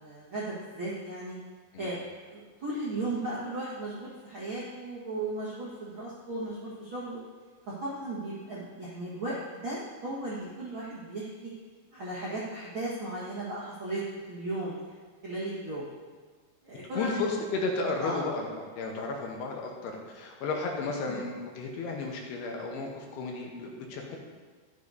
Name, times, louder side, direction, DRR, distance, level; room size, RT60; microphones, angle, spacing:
voice 1, 0.0-1.4 1.8-2.0 2.3-7.2 7.7-9.3 9.6-11.5 11.9-14.0 14.3-15.0 15.2-15.8 16.6-17.1 18.0-18.2 21.1-21.3, right 2 dB, 85° right, -8 dB, 1.1 m, -36 dB
voice 2, 16.9-24.2, left 3 dB, 75° left, 0 dB, 2.8 m, -33 dB
13.0 x 9.9 x 2.7 m, 1.5 s
omnidirectional pair, 5.1 m